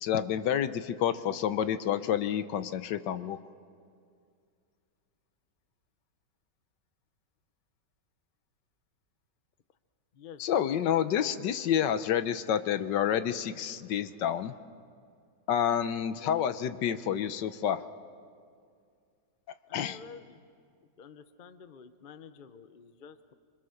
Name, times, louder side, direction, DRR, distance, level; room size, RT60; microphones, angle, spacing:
voice 1, 0.0-3.4 10.4-14.5 15.5-17.8 19.7-20.0, left 9 dB, 75° left, 12 dB, 1.4 m, -29 dB
voice 2, 10.1-11.4 16.1-16.4 19.7-20.4 21.0-23.3, left 6 dB, 45° left, 11 dB, 0.7 m, -49 dB
26.5 x 25.0 x 6.5 m, 2.2 s
omnidirectional pair, 2.0 m